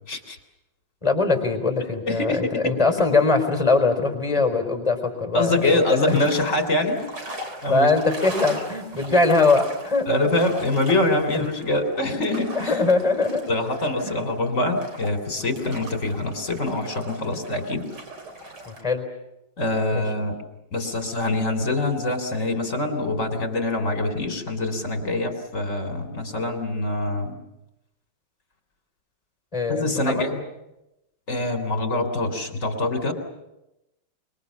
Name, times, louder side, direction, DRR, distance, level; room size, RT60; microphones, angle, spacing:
voice 1, 1.0-6.2 7.7-10.1 12.5-13.4 14.0-14.2 18.7-19.0 19.9-20.0 29.5-30.2, left 3 dB, 15° left, 5 dB, 4.4 m, -22 dB
voice 2, 2.1-2.8 5.3-7.0 7.6-7.9 10.1-12.9 13.5-17.9 19.6-20.4 20.7-27.4 29.7-30.4 31.3-33.1, left 2 dB, 40° left, 6 dB, 3.7 m, -24 dB
sound 1, 5.6-18.8, right 1 dB, 60° right, 4.2 m, -39 dB
26.0 x 23.5 x 7.3 m, 0.93 s
omnidirectional pair, 2.1 m